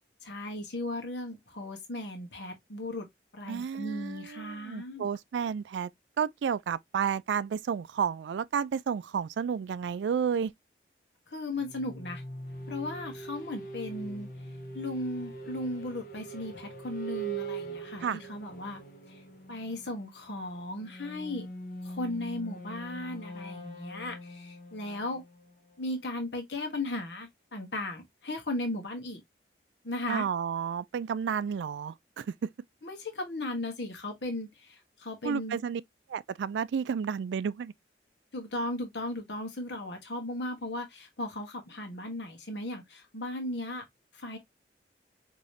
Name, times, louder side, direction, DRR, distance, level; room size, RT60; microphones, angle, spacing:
voice 1, 0.2-3.1 3.3-5.1 11.3-12.2 12.7-14.3 14.7-18.8 19.1-19.2 19.5-21.5 21.8-25.2 25.8-29.2 29.8-30.2 32.8-35.6 38.3-43.8 44.1-44.4, left 1 dB, 80° left, 1.3 m, -36 dB
voice 2, 3.5-5.9 6.2-10.5 18.0-18.2 30.1-32.3 35.2-35.8 36.1-37.7, right 7 dB, 85° right, 0.3 m, -31 dB
sound 1, 11.6-26.2, right 3 dB, 50° left, 1.0 m, -42 dB
4.9 x 3.0 x 2.6 m
head